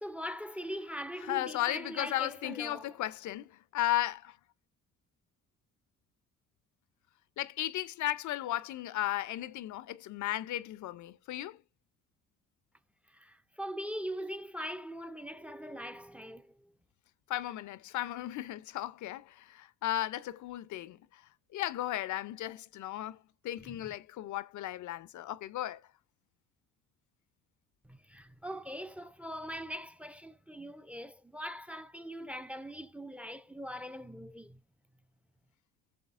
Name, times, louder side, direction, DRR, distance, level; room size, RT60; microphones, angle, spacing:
voice 1, 0.0-2.9 13.1-16.5 23.6-23.9 27.8-34.6, equal, 5° right, 0.5 m, -41 dB
voice 2, 1.2-4.4 7.4-11.6 17.3-21.2 21.5-23.2 23.4-25.8, left 14 dB, 75° left, 0.6 m, -35 dB
15.0 x 6.8 x 2.5 m
cardioid pair, 90°, 30 cm